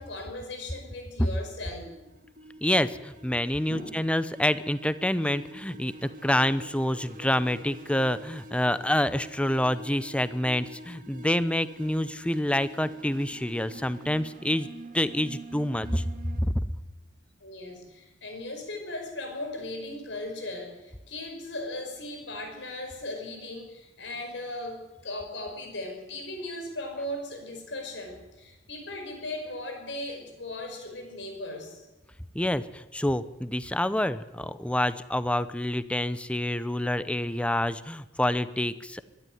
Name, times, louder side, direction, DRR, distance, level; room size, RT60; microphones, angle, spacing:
voice 1, 0.0-1.9 3.7-3.9 17.4-31.9, left 1 dB, 75° left, 4 dB, 5.6 m, -37 dB
sound 1, 1.8-16.4, right 1 dB, 50° right, 2.3 m, -46 dB
voice 2, 2.6-14.7 14.9-16.0 16.4-16.7 32.3-39.1, left 1 dB, 5° left, 14 dB, 0.7 m, -27 dB
22.5 x 12.5 x 9.4 m, 0.99 s
head